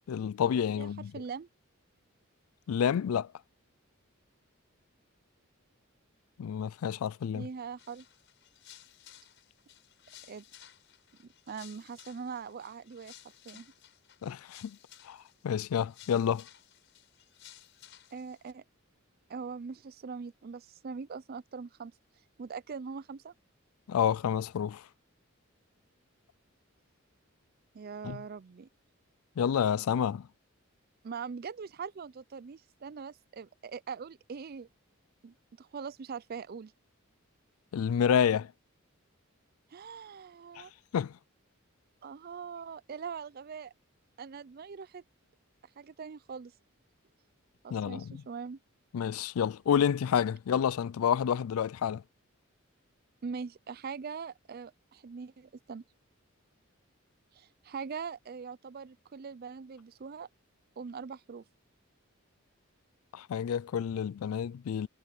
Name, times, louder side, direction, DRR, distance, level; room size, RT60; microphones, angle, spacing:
voice 1, 0.1-1.1 2.7-3.3 6.4-7.5 14.2-14.8 15.0-15.2 15.4-16.4 23.9-24.8 28.0-28.2 29.4-30.3 37.7-38.5 40.6-40.7 40.9-41.1 47.7-48.1 48.9-52.0 63.1-64.9, left 8 dB, 90° left, 0.4 m, -29 dB
voice 2, 0.8-1.5 7.3-8.1 10.3-10.4 11.5-13.1 13.4-13.7 18.1-18.6 19.3-21.9 22.4-23.3 27.7-28.7 31.0-34.7 35.2-36.7 39.7-40.7 42.0-43.7 44.2-45.0 45.8-46.5 47.6-48.6 53.2-55.8 57.3-60.3 60.8-61.4, right 5 dB, 45° right, 0.4 m, -42 dB
sound 1, 7.8-18.5, left 11 dB, 60° left, 6.6 m, -56 dB
head